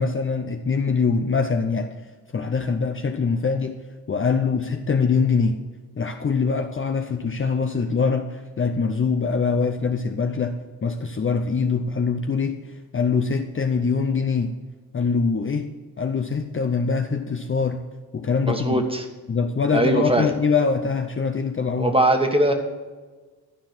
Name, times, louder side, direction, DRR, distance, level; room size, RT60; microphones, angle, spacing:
voice 1, 0.0-2.0 2.3-5.6 6.0-14.5 14.9-15.7 16.0-17.8 18.1-18.8 19.3-21.9, left 5 dB, 30° left, 5 dB, 0.7 m, -23 dB
voice 2, 18.5-19.0 19.7-20.3 21.8-22.5, right 1 dB, 15° right, 5 dB, 1.5 m, -20 dB
12.0 x 4.6 x 7.4 m, 1.3 s
cardioid pair, 80°, 40 cm